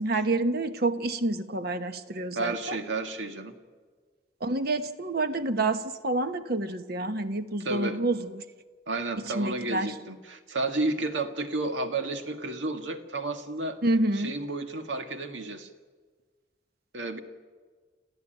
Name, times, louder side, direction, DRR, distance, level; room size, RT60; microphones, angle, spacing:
voice 1, 0.0-2.8 4.4-8.4 9.3-9.9 13.8-14.4, right 2 dB, 60° right, 9 dB, 1.2 m, -28 dB
voice 2, 2.4-3.6 7.6-8.0 8.9-13.8 14.2-15.7 16.9-17.2, right 2 dB, 90° right, 6 dB, 1.9 m, -32 dB
27.5 x 14.5 x 9.1 m, 1.5 s
head